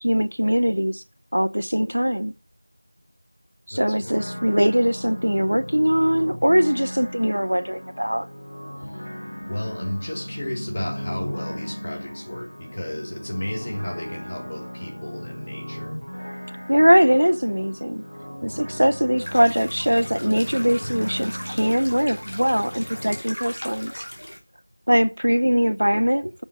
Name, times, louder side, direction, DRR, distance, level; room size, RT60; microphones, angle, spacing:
voice 1, 0.0-1.0 1.3-2.3 3.7-8.3 16.7-18.0 18.4-24.0 24.9-26.4, equal, 60° right, 0.6 m, -21 dB
voice 2, 3.7-4.1 8.8-9.1 9.5-16.0, left 1 dB, 10° left, 0.7 m, -33 dB
sound 1, 4.0-23.2, equal, 70° left, 0.6 m, -36 dB
sound 2, 19.2-24.4, equal, 50° left, 3.0 m, -38 dB
7.1 x 5.9 x 7.1 m
figure-of-eight pair, 180°, 0 cm